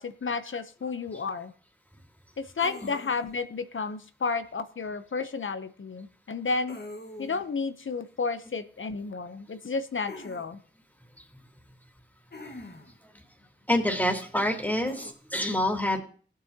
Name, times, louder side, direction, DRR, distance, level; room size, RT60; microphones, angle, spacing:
voice 1, 0.0-1.5 2.4-6.8 7.2-10.6, left 4 dB, 80° left, 11 dB, 0.8 m, -32 dB
sound 1, 2.6-3.4 6.7-7.5 10.1-10.4 12.3-13.0 14.8-15.1, left 2 dB, 55° left, 1.5 m, -43 dB
voice 2, 13.7-16.0, left 1 dB, 10° left, 1 dB, 2.7 m, -27 dB
17.5 x 8.7 x 2.9 m, 0.43 s
wide cardioid pair, 45°, 20 cm